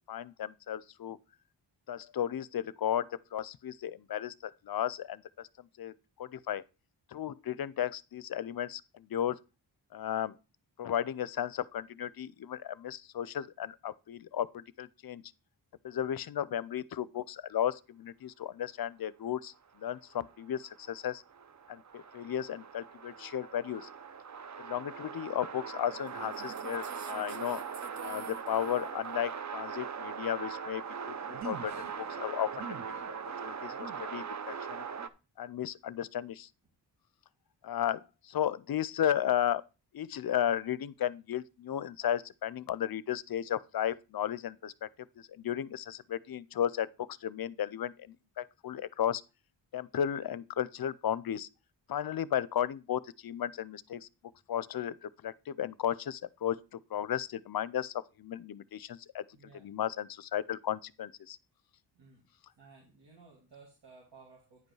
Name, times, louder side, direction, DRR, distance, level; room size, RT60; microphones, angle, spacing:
voice 1, 0.1-1.2 1.9-6.6 7.1-9.4 9.9-10.3 10.8-15.2 15.8-21.2 21.7-23.9 24.6-27.6 28.0-32.7 33.1-34.9 35.4-36.5 37.6-39.7 39.9-44.9 45.2-49.2 49.7-51.5 51.9-54.1 54.5-59.2 59.6-61.4, left 10 dB, 55° left, 0.5 m, -34 dB
sound 1, 20.1-35.1, right 6 dB, 40° right, 0.6 m, -40 dB
voice 2, 59.3-59.7 61.9-62.3 62.6-64.7, right 4 dB, 75° right, 2.6 m, -57 dB
9.6 x 5.3 x 4.7 m
wide cardioid pair, 100°, 43 cm